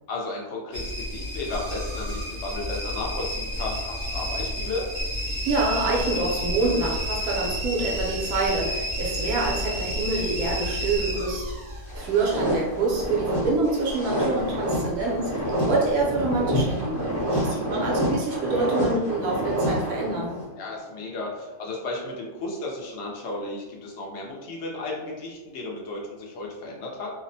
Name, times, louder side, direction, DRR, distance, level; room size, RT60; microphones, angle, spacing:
voice 1, 0.1-4.8 17.3-17.7 20.6-27.1, left 2 dB, 65° left, -2 dB, 0.7 m, -34 dB
sound 1, 0.7-15.6 15.9-16.5 17.0-17.5 17.9-18.0, equal, 50° right, 0.7 m, -31 dB
voice 2, 5.5-11.4 11.9-20.4, right 3 dB, 70° right, -3 dB, 1.0 m, -26 dB
sound 2, 11.9-20.5, equal, 40° left, 1.0 m, -28 dB
2.7 x 2.0 x 2.6 m, 1.1 s
omnidirectional pair, 1.7 m